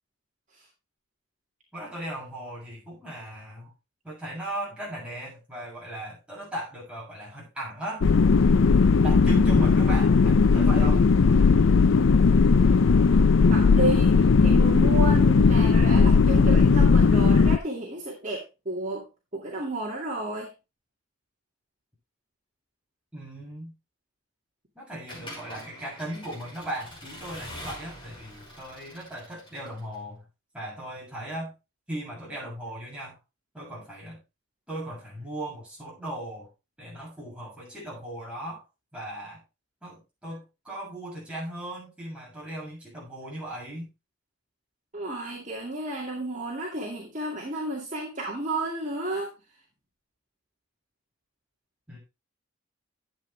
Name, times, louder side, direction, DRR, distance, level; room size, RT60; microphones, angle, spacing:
voice 1, 1.7-3.7 4.0-8.1 9.0-11.1 23.1-23.7 24.8-30.2 30.5-31.5 31.9-33.2 33.5-34.2 34.7-36.5 36.8-38.6 38.9-39.4 39.8-43.9 51.9-52.0, right 1 dB, 5° right, -5 dB, 7.3 m, -37 dB
sound 1, 8.0-17.6, left 4 dB, 80° left, 0.5 m, -18 dB
voice 2, 13.5-19.1 19.3-20.5 44.9-49.3, right 2 dB, 40° right, -2 dB, 2.3 m, -32 dB
Accelerating revving vroom / Mechanisms, 25.1-30.0, equal, 25° left, 5.8 m, -44 dB
12.0 x 8.4 x 3.3 m, 0.26 s
head